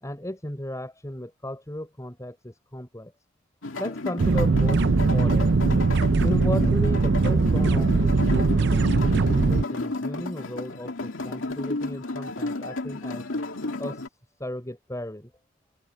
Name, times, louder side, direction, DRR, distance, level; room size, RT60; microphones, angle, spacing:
voice 1, 0.0-3.1 3.8-4.8 5.1-5.5 6.2-13.2 13.8-14.0 14.4-15.3, left 1 dB, 15° left, 5.8 m, -35 dB
sound 1, 3.6-14.1, left 2 dB, 65° left, 2.5 m, -32 dB
sound 2, 4.2-9.6, right 3 dB, 55° right, 0.6 m, -21 dB
head